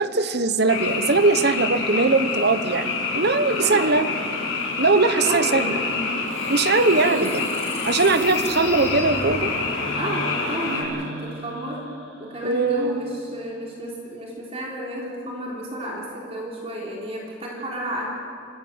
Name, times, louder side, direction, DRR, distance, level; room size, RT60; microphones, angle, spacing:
voice 1, 0.0-4.1 4.8-5.8 6.5-7.4 7.8-9.5 12.4-13.0, right 3 dB, 55° right, 11 dB, 1.2 m, -20 dB
Frog, 0.7-10.8, left 3 dB, 90° left, 5.2 m, -27 dB
voice 2, 3.4-4.1 5.1-5.8 6.9-7.3 9.9-11.8 12.2-18.1, equal, 30° right, -2 dB, 3.8 m, -32 dB
sound 1, 5.5-9.8, left 1 dB, 30° left, 3.5 m, -35 dB
sound 2, 9.4-13.5, right 1 dB, 80° right, 6.1 m, -38 dB
26.5 x 17.5 x 8.1 m, 2.6 s
head